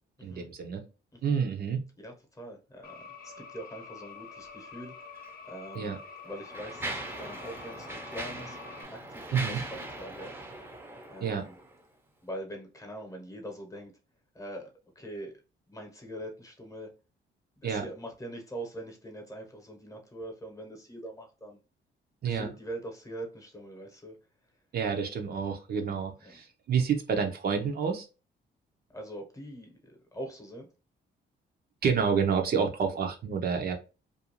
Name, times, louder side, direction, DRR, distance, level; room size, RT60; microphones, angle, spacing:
voice 1, 0.2-0.8 1.2-1.8 5.7-6.0 9.3-9.6 11.2-11.5 17.6-17.8 22.2-22.5 24.7-28.1 31.8-33.8, right 6 dB, 50° right, 0.6 m, -29 dB
voice 2, 2.0-4.9 5.5-5.9 6.2-8.6 8.9-10.3 11.1-11.6 12.2-13.9 14.3-15.4 15.7-16.9 17.6-21.6 22.2-24.2 26.2-26.4 28.9-30.7, right 1 dB, 15° left, 0.9 m, -43 dB
sound 1, 2.8-8.8, left 5 dB, 50° left, 0.5 m, -47 dB
Mechanisms, 5.2-5.3 6.0-11.8, right 2 dB, 10° right, 0.6 m, -40 dB
2.5 x 2.3 x 2.9 m
cardioid pair, 90°, 20 cm